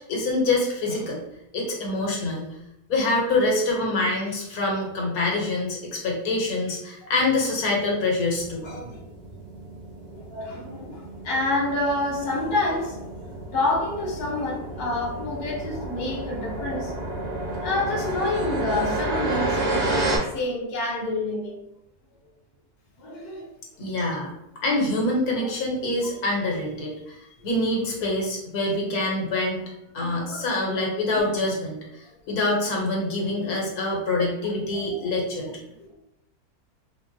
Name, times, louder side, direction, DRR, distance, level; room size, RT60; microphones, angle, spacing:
voice 1, 0.1-1.2 1.5-2.4 2.9-8.8 23.8-24.3 24.6-27.1 27.4-29.6 29.9-31.8 32.3-35.5, left 2 dB, 70° left, -2 dB, 1.2 m, -25 dB
sound 1, 8.4-20.2, right 1 dB, 50° right, 0.5 m, -31 dB
voice 2, 10.1-13.0 13.5-17.1 17.6-21.6 23.0-23.5 24.1-24.2 28.7-28.9 30.0-30.4 34.7-35.1 35.8-35.9, left 2 dB, 50° left, -3 dB, 0.8 m, -28 dB
3.5 x 2.0 x 2.6 m, 0.83 s
omnidirectional pair, 1.6 m